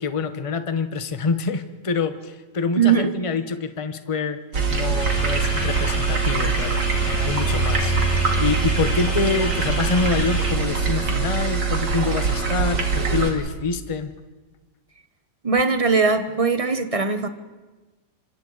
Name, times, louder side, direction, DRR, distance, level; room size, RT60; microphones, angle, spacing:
voice 1, 0.0-4.4 4.7-14.1, left 4 dB, 25° left, 10 dB, 0.8 m, -26 dB
voice 2, 2.8-3.1 15.4-17.3, right 5 dB, 25° right, 9 dB, 0.8 m, -20 dB
sound 1, 4.5-13.3, right 5 dB, 85° right, 3.0 m, -23 dB
sound 2, 5.0-10.5, equal, 55° left, 5.1 m, -29 dB
27.0 x 26.0 x 4.0 m, 1.2 s
omnidirectional pair, 1.9 m